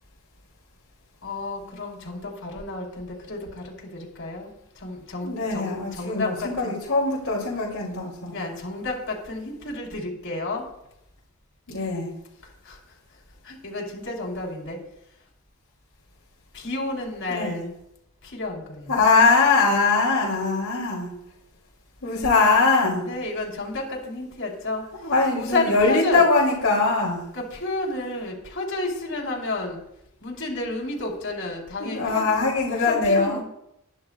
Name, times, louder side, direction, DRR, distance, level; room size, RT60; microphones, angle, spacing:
voice 1, 1.2-6.8 8.3-10.7 12.6-12.8 13.4-14.8 16.5-17.7 18.2-18.9 23.0-24.8 25.3-26.2 27.3-29.8 30.2-33.4, left 2 dB, 55° left, -1 dB, 4.4 m, -31 dB
voice 2, 5.2-8.3 11.7-12.1 17.3-17.6 18.9-21.1 22.0-23.1 25.0-27.3 31.8-33.4, left 3 dB, 75° left, -6 dB, 3.2 m, -21 dB
21.5 x 11.0 x 2.5 m, 0.81 s
head